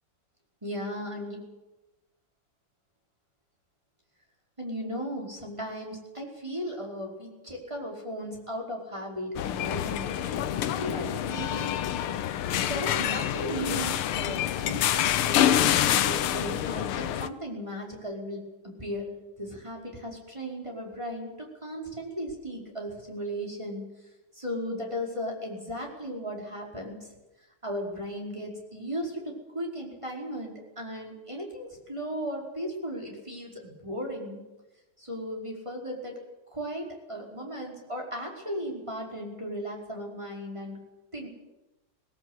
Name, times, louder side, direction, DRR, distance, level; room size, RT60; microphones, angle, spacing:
voice 1, 0.6-1.5 4.6-11.8 12.2-19.1 19.4-23.8 24.3-27.1 27.6-34.4 35.0-36.1 36.5-40.8 41.1-41.3, equal, 15° right, -1 dB, 5.1 m, -36 dB
sound 1, 9.4-17.3, left 11 dB, 85° left, 1.8 m, -27 dB
20.0 x 20.0 x 8.3 m, 1.0 s
omnidirectional pair, 2.3 m